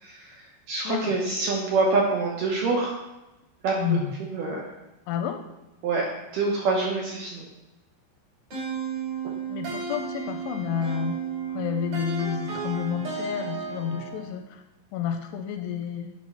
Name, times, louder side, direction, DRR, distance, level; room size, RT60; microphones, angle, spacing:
voice 1, 0.0-3.0 3.6-4.0 4.3-4.7 5.8-6.1 6.3-7.4, right 3 dB, 70° right, -2 dB, 2.1 m, -26 dB
voice 2, 0.8-1.2 3.8-4.1 5.1-5.4 9.5-11.2 11.5-14.6 14.9-16.1, left 8 dB, 85° left, 5 dB, 2.5 m, -30 dB
sound 1, 8.5-14.3, right 5 dB, 45° right, 4.1 m, -33 dB
10.0 x 3.5 x 5.5 m, 0.99 s
omnidirectional pair, 5.0 m